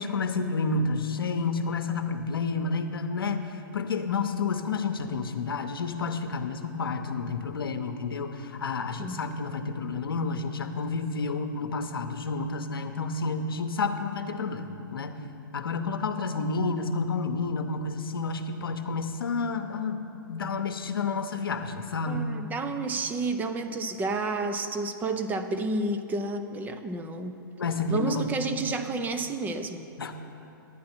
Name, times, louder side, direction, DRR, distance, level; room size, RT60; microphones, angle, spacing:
voice 1, 0.0-14.7 14.9-15.2 15.5-20.0 20.3-22.3 27.6-28.6 30.0-30.1, left 4 dB, 85° left, 7 dB, 0.8 m, -30 dB
voice 2, 22.1-27.4 27.9-29.9, right 3 dB, 15° right, 8 dB, 0.5 m, -30 dB
11.0 x 9.4 x 4.4 m, 2.8 s
hypercardioid pair, 125°, 12 cm